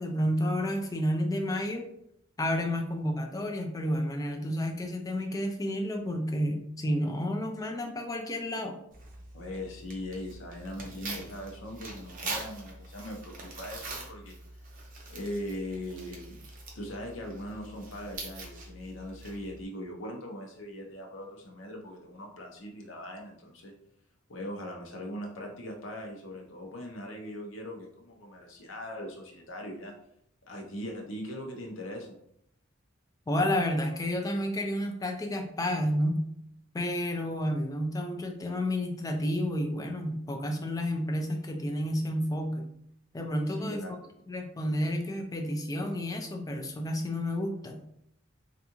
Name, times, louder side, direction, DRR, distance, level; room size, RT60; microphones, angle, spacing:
voice 1, 0.0-1.9 2.4-8.8 33.3-36.2 36.7-42.7 43.1-43.8 44.3-47.8, equal, 15° left, 3 dB, 0.4 m, -30 dB
Tearing, 8.9-19.6, right 2 dB, 40° right, 0.7 m, -43 dB
voice 2, 9.3-14.4 15.1-16.4 16.7-23.7 24.3-29.9 30.5-32.1 43.5-44.1, left 1 dB, 70° left, 1 dB, 0.8 m, -40 dB
3.4 x 2.5 x 2.9 m, 0.74 s
head